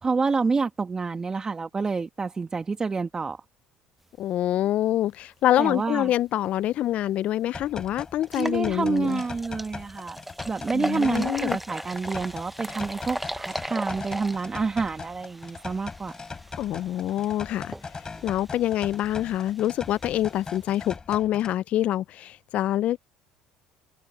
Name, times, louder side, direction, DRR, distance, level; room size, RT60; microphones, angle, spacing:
voice 1, 0.0-3.4 5.6-6.1 8.4-10.2 10.5-16.2, right 4 dB, 25° right, 2.1 m, -28 dB
voice 2, 4.2-9.2 10.7-11.6 16.6-23.0, left 13 dB, 60° left, 0.5 m, -26 dB
sound 1, 6.9-7.0 7.5-7.6 8.2-20.9, right 1 dB, 5° right, 1.0 m, -38 dB
sound 2, 7.5-21.6, left 4 dB, 30° left, 7.0 m, -40 dB
hypercardioid pair, 65°, 3 cm